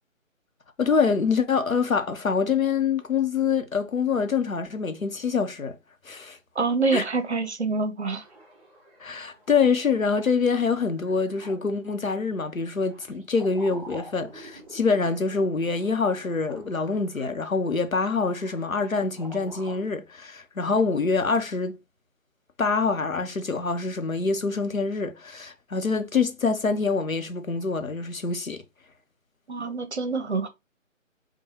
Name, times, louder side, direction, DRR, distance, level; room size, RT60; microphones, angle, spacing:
voice 1, 0.8-5.8 6.0-6.4 6.9-7.0 9.0-21.8 22.6-28.6, left 5 dB, 90° left, 0.8 m, -25 dB
voice 2, 6.6-8.2 29.5-30.5, right 3 dB, 55° right, 0.7 m, -26 dB
sound 1, 8.1-19.8, right 1 dB, 25° right, 1.3 m, -48 dB
4.5 x 2.2 x 2.9 m
figure-of-eight pair, 160°, 40 cm